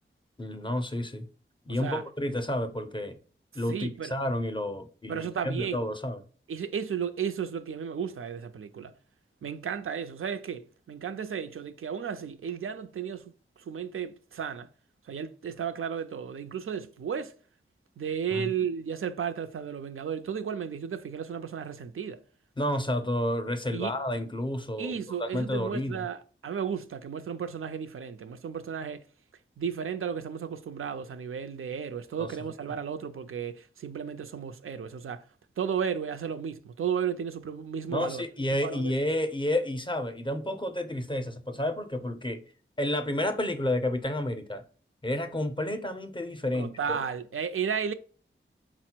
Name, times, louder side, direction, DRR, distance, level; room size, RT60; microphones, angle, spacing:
voice 1, 0.4-1.3 1.7-3.2 3.5-6.2 18.3-18.5 22.6-24.9 25.2-26.1 32.2-32.3 37.9-42.4 42.8-44.6 45.0-47.0, left 1 dB, 25° left, 0.5 m, -30 dB
voice 2, 3.7-4.2 5.1-5.8 6.5-8.9 9.4-13.2 13.7-14.7 15.1-17.3 18.0-22.2 23.7-24.0 24.8-29.0 29.6-35.2 35.6-38.9 46.5-47.9, right 7 dB, 85° right, 0.4 m, -34 dB
4.2 x 2.0 x 4.3 m
wide cardioid pair, 75°, 21 cm